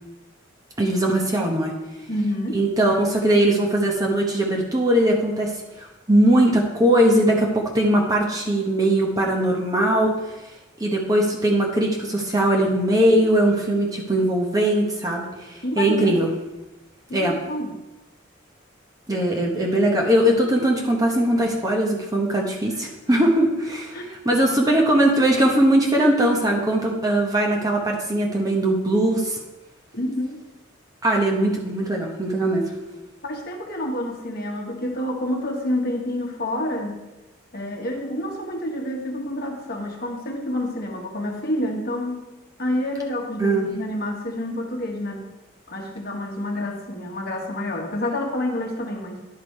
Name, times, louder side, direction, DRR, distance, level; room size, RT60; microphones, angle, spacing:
voice 1, 0.8-1.7 2.5-5.5 5.8-10.2 10.8-16.3 17.1-17.4 19.1-29.4 31.0-32.7 43.4-43.7, right 1 dB, 15° right, -1 dB, 1.0 m, -20 dB
voice 2, 2.1-2.6 15.6-16.3 17.1-17.8 23.9-24.1 29.9-30.4 33.2-37.0 37.5-42.2 42.6-45.3 45.7-49.2, left 1 dB, 50° left, 1 dB, 1.2 m, -28 dB
10.5 x 4.8 x 4.6 m, 1.0 s
head